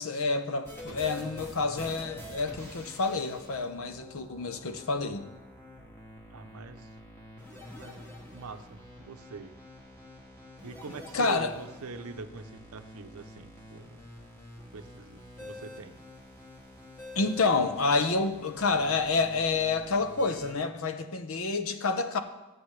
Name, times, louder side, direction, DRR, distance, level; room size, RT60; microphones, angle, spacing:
voice 1, 0.0-5.3 11.1-11.5 17.1-22.2, left 3 dB, 70° left, 8 dB, 0.8 m, -28 dB
sound 1, 0.6-20.5, equal, 10° left, 1.6 m, -47 dB
voice 2, 6.3-6.9 7.8-9.5 10.6-14.1 14.7-16.0, right 4 dB, 80° right, 9 dB, 0.7 m, -44 dB
13.0 x 7.7 x 3.2 m, 1.1 s
head